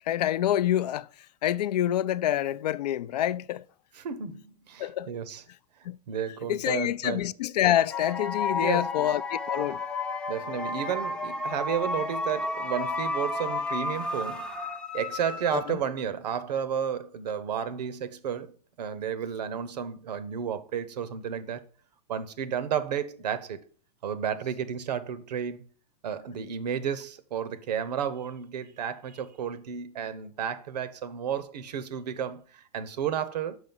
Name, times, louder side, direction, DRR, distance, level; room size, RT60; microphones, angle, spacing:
voice 1, 0.1-1.1 1.4-3.6 4.8-5.1 5.8-6.0 6.5-9.8 15.5-15.8, left 12 dB, 85° left, 0.4 m, -27 dB
voice 2, 4.0-5.4 6.1-7.3 8.5-9.1 10.3-14.5 14.9-18.5 18.8-21.6 22.1-23.6 24.0-25.6 26.0-33.6, right 8 dB, 85° right, 0.8 m, -32 dB
sound 1, 7.9-16.0, left 3 dB, 5° left, 0.4 m, -32 dB
6.2 x 4.9 x 5.4 m
supercardioid pair, 145°, 20 cm